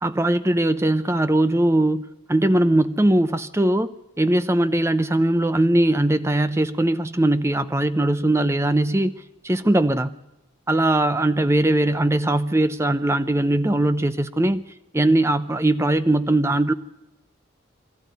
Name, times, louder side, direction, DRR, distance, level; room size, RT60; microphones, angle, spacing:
voice 1, 0.0-10.2 10.7-14.6 14.9-16.7, right 1 dB, 15° right, 12 dB, 0.6 m, -20 dB
22.5 x 13.5 x 9.4 m, 0.95 s
head